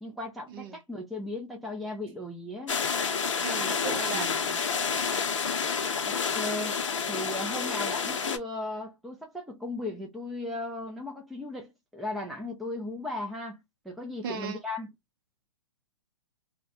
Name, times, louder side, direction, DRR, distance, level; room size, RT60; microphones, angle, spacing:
voice 1, 0.0-2.8 4.1-4.6 6.0-14.9, left 2 dB, ahead, 0.4 m, -37 dB
sound 1, 2.7-8.4, left 6 dB, 80° left, 0.6 m, -29 dB
voice 2, 3.4-4.3 14.2-14.6, right 6 dB, 45° right, 0.8 m, -36 dB
2.2 x 2.1 x 2.8 m
hypercardioid pair, 130°, 16 cm